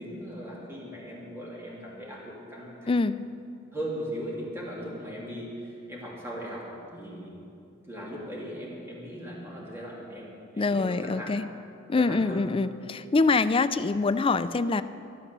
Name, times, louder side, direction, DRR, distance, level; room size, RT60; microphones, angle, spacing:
voice 1, 0.0-3.0 3.7-6.6 6.9-7.4 7.8-11.3 11.9-12.5, equal, 15° right, -5 dB, 2.7 m, -38 dB
voice 2, 10.6-11.4 11.9-14.8, left 3 dB, 25° left, 12 dB, 0.4 m, -25 dB
12.0 x 12.0 x 6.8 m, 2.6 s
head